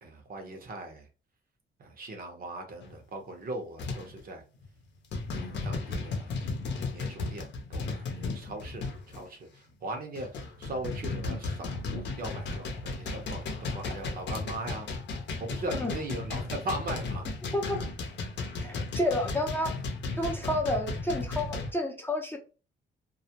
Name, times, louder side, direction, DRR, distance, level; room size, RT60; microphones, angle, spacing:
voice 1, 0.0-1.1 1.8-4.4 5.3-6.4 6.9-14.9 15.4-17.2, right 2 dB, 45° right, 0.8 m, -39 dB
sound 1, 2.8-3.0 3.8-4.2 4.6-4.8 5.1-9.2 9.8-21.7, left 3 dB, 65° left, 0.7 m, -35 dB
voice 2, 17.5-17.9 18.6-19.7 20.2-22.4, left 1 dB, 10° left, 0.6 m, -30 dB
2.3 x 2.0 x 2.8 m
cardioid pair, 90°, 20 cm